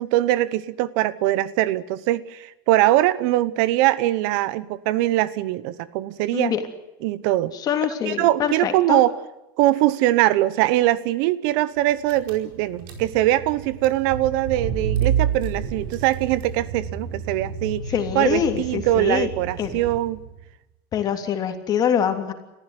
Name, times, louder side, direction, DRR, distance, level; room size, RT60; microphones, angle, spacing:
voice 1, 0.0-6.5 7.0-7.5 8.1-9.1 9.6-17.8 18.1-20.2, right 15 dB, 65° right, 18 dB, 1.0 m, -22 dB
voice 2, 7.5-9.0 17.9-19.3 19.6-19.8 20.9-22.3, left 8 dB, 35° left, 6 dB, 3.2 m, -24 dB
Car / Engine, 11.8-11.9 12.1-20.4, right 7 dB, 85° right, 4.8 m, -30 dB
28.0 x 15.0 x 9.7 m, 0.94 s
supercardioid pair, 135°, 12 cm